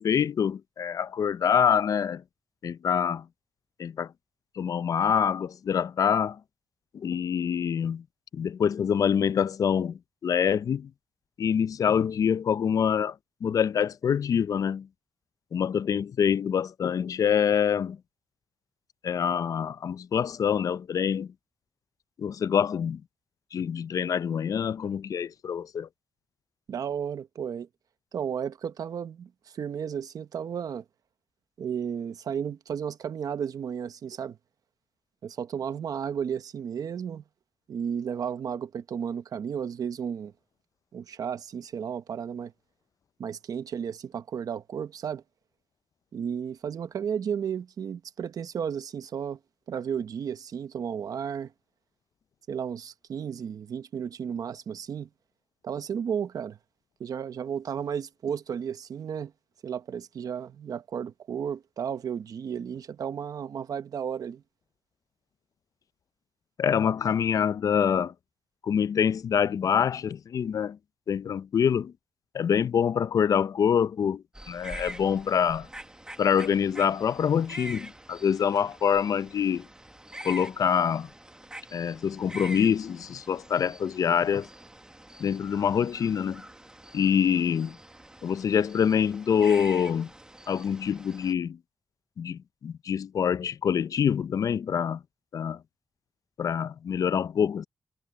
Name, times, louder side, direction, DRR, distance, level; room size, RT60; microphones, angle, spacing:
voice 1, 0.0-2.2 2.6-3.3 3.8-4.1 4.6-6.4 6.9-8.0 8.3-10.9 11.4-13.2 13.4-14.9 15.5-18.0 19.0-21.3 22.2-23.0 23.5-25.9 66.6-68.1 68.6-70.8 71.1-71.9 72.3-75.7 76.2-79.7 80.2-81.1 81.7-84.5 85.2-86.4 86.9-87.8 88.2-90.1 90.5-91.6 92.2-95.0 95.3-95.6 96.4-97.7, left 7 dB, 70° left, 0.4 m, -25 dB
voice 2, 26.7-27.7 28.1-30.8 31.6-34.4 35.2-37.2 37.7-40.3 40.9-42.5 43.2-45.2 46.1-49.4 49.7-51.5 52.5-55.1 55.6-56.6 57.0-59.3 59.6-64.4, right 7 dB, 80° right, 0.9 m, -33 dB
sound 1, 74.3-91.3, right 1 dB, 10° right, 1.3 m, -45 dB
cardioid pair, 90°, 6 cm